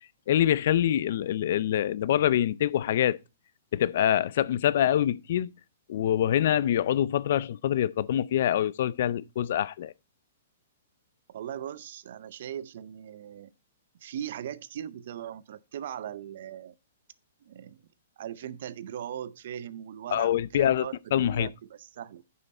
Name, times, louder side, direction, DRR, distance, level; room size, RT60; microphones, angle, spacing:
voice 1, 0.3-3.2 3.7-5.5 5.9-9.9 20.1-20.9 21.1-21.5, left 11 dB, 60° left, 0.4 m, -25 dB
voice 2, 11.3-13.5 14.0-16.7 17.4-17.9 18.2-22.2, right 10 dB, 60° right, 0.6 m, -39 dB
9.4 x 5.6 x 4.2 m
hypercardioid pair, 140°, 0 cm